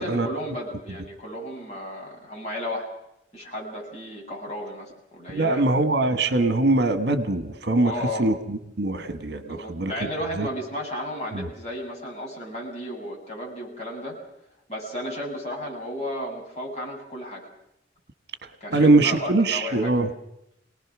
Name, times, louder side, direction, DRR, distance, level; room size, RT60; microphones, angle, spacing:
voice 1, 0.0-2.9 3.3-5.8 7.8-8.3 9.4-14.2 14.7-17.5 18.6-20.0, equal, 40° left, -2 dB, 7.7 m, -34 dB
voice 2, 5.3-7.9 8.2-9.9 10.4-10.5 11.3-11.4 18.7-20.1, right 2 dB, 60° right, 10 dB, 1.5 m, -22 dB
27.0 x 19.0 x 6.2 m, 0.84 s
head